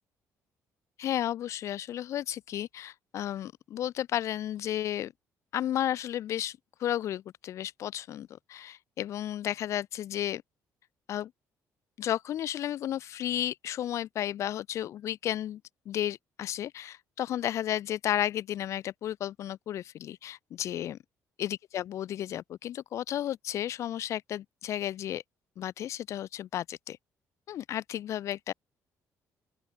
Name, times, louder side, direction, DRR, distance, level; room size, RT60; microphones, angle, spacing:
voice 1, 1.0-5.1 5.5-10.4 11.1-11.3 12.0-15.6 15.9-21.0 21.4-25.2 25.6-27.0 27.5-28.5, left 11 dB, 55° left, 0.7 m, -33 dB
open air
cardioid pair, 155°, 6 cm